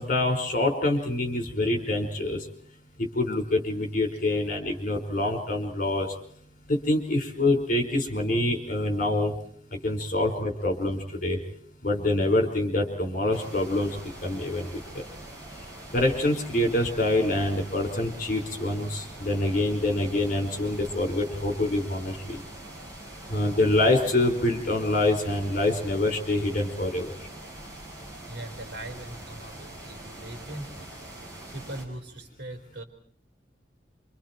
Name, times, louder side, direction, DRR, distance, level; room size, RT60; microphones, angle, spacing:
voice 1, 0.0-2.5 3.1-6.1 6.7-9.3 9.7-11.4 11.8-14.0 14.2-14.7 14.9-15.0 15.9-22.4 23.3-27.1, left 1 dB, 50° left, 4 dB, 4.9 m, -26 dB
sound 1, 13.3-31.8, right 1 dB, 20° right, 6.1 m, -43 dB
voice 2, 28.3-30.9 31.5-32.8, right 1 dB, 70° right, 5 dB, 4.4 m, -40 dB
28.0 x 26.0 x 4.5 m, 0.62 s
head